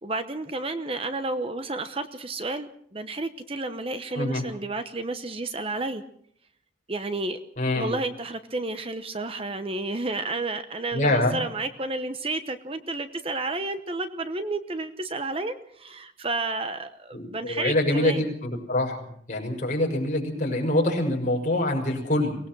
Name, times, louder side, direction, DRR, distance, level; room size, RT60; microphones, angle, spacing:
voice 1, 0.0-6.0 6.9-7.4 7.7-18.3, right 2 dB, 30° right, 9 dB, 0.9 m, -31 dB
voice 2, 7.6-7.9 10.9-11.4 17.1-19.0 19.3-22.4, left 1 dB, 40° left, 0 dB, 6.4 m, -25 dB
23.5 x 19.0 x 6.2 m, 0.67 s
head